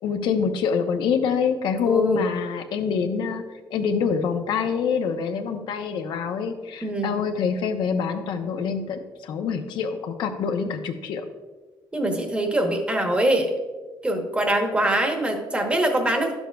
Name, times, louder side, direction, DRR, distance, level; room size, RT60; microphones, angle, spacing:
voice 1, 0.0-3.4 3.7-11.2, left 6 dB, 75° left, 6 dB, 0.7 m, -25 dB
voice 2, 1.9-2.2 6.8-7.2 11.9-13.5 14.0-16.3, right 1 dB, 15° right, 3 dB, 1.0 m, -23 dB
11.5 x 7.1 x 2.3 m, 1.3 s
cardioid pair, 135°, 8 cm